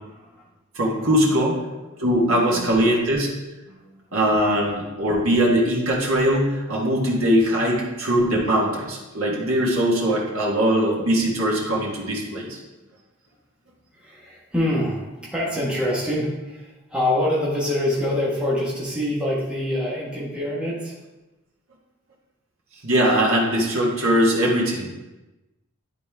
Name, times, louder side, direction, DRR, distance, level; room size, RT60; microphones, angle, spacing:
voice 1, 0.7-1.6 2.0-3.3 4.1-12.6 22.8-24.9, equal, 80° right, -4 dB, 1.6 m, -21 dB
voice 2, 1.6-2.8 3.7-4.2 13.9-21.0, left 1 dB, 5° right, -7 dB, 1.6 m, -26 dB
10.5 x 4.2 x 3.5 m, 1.1 s
head